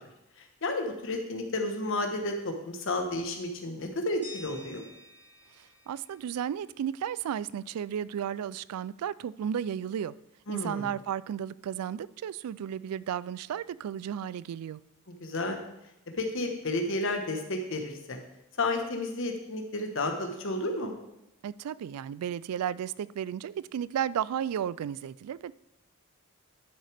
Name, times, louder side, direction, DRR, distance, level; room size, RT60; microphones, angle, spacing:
voice 1, 0.4-4.8 10.5-10.9 15.2-15.6 16.2-18.2 18.6-20.9, left 2 dB, 60° left, 4 dB, 1.2 m, -32 dB
sound 1, 4.2-7.1, left 1 dB, 5° right, 2.7 m, -50 dB
voice 2, 5.6-10.1 10.5-14.8 21.4-25.5, right 9 dB, 90° right, 20 dB, 0.3 m, -34 dB
11.5 x 6.4 x 3.4 m, 0.87 s
head